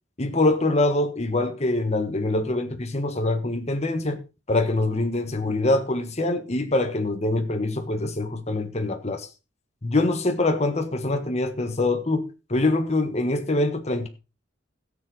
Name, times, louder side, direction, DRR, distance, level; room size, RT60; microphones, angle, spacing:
voice 1, 0.2-4.2 4.5-9.2 9.8-14.1, left 2 dB, 35° left, 1.4 m, -24 dB
16.0 x 7.2 x 4.8 m
head